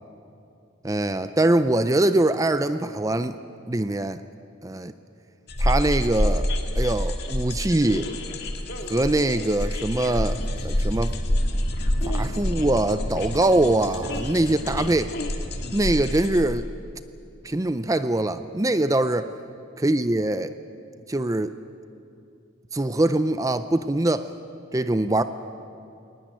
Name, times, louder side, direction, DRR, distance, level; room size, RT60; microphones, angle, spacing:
voice 1, 0.8-3.4 3.7-4.2 4.6-4.9 5.6-6.5 6.8-8.1 8.9-11.1 12.0-15.1 15.7-16.7 17.4-19.3 19.8-20.5 21.1-21.5 22.7-24.3 24.7-25.2, right 2 dB, 15° right, 11 dB, 0.5 m, -23 dB
sound 1, 5.5-16.4, left 1 dB, 55° left, 1.9 m, -27 dB
22.0 x 19.0 x 9.1 m, 2.6 s
head